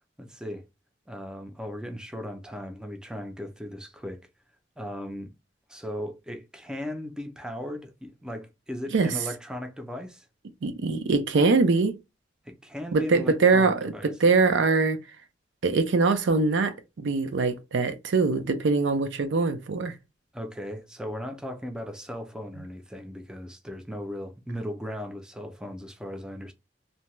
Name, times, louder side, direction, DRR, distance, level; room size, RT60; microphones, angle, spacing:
voice 1, 0.2-0.7 1.1-4.3 4.8-5.3 5.7-10.2 12.5-14.1 20.3-26.5, equal, 5° right, 0.4 m, -37 dB
voice 2, 10.6-12.0 12.9-15.0 15.6-19.9, right 4 dB, 80° right, 0.5 m, -23 dB
2.7 x 2.1 x 3.0 m
head